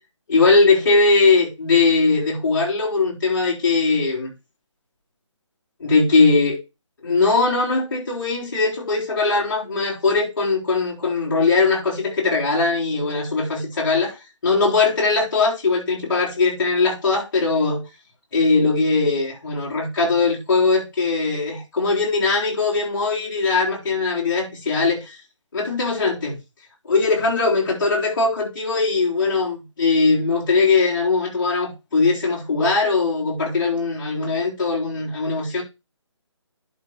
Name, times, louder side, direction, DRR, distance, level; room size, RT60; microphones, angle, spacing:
voice 1, 0.3-4.3 5.8-6.6 7.0-14.2 14.4-17.8 18.3-25.2 25.5-26.4 26.8-35.6, left 3 dB, 40° left, 4.0 m, -20 dB
11.5 x 4.3 x 4.3 m
hypercardioid pair, 170°, 16 cm